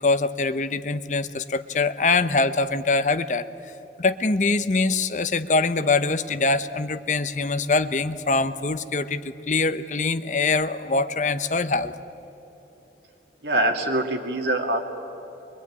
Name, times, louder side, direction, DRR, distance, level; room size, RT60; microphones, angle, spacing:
voice 1, 0.0-3.5 4.0-11.9, left 3 dB, 40° left, 12 dB, 0.8 m, -23 dB
voice 2, 13.4-14.8, right 1 dB, 75° right, 3 dB, 2.6 m, -24 dB
23.5 x 23.0 x 9.6 m, 3.0 s
head